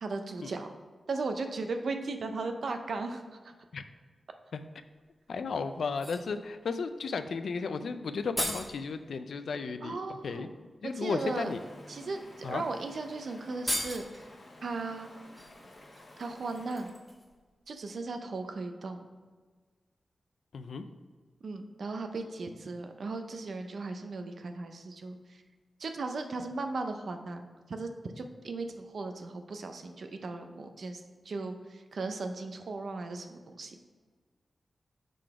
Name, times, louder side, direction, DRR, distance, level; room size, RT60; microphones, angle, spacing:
voice 1, 0.0-0.7 1.1-3.5 9.8-10.5 11.0-11.5 11.9-14.3 14.6-15.1 16.2-16.9 17.7-19.1 21.4-25.4 25.8-33.8, right 3 dB, 65° right, 6 dB, 0.6 m, -37 dB
sound 1, 5.0-5.1 5.8-6.3 7.8-7.9 8.1-8.8 10.2-10.3 10.9-11.1 12.0-12.1 12.5-12.6 12.9-13.0 13.5-14.2 15.3-17.4 17.7-17.8, equal, 5° right, 1.1 m, -38 dB
voice 2, 5.3-10.0 10.2-10.5 10.8-11.6 12.4-12.6 20.5-20.8, left 4 dB, 80° left, 9 dB, 0.4 m, -34 dB
Stream, 11.2-16.9, left 1 dB, 45° left, 1.3 m, -52 dB
6.8 x 3.8 x 4.7 m, 1.5 s
wide cardioid pair, 155°, 0 cm